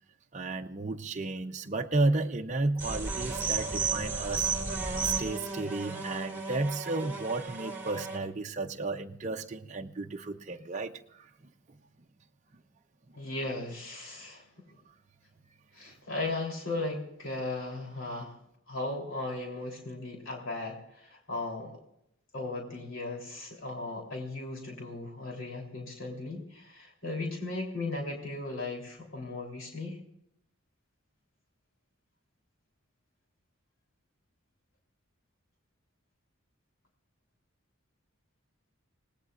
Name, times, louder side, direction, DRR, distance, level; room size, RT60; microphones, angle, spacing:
voice 1, 0.3-4.5 5.0-11.0, right 2 dB, 35° right, 0.6 m, -32 dB
sound 1, 2.8-8.2, right 4 dB, 10° right, 2.6 m, -33 dB
voice 2, 13.1-14.5 15.7-18.4 18.7-21.8 22.3-30.0, left 2 dB, 75° left, 3.4 m, -37 dB
26.0 x 18.5 x 2.5 m
head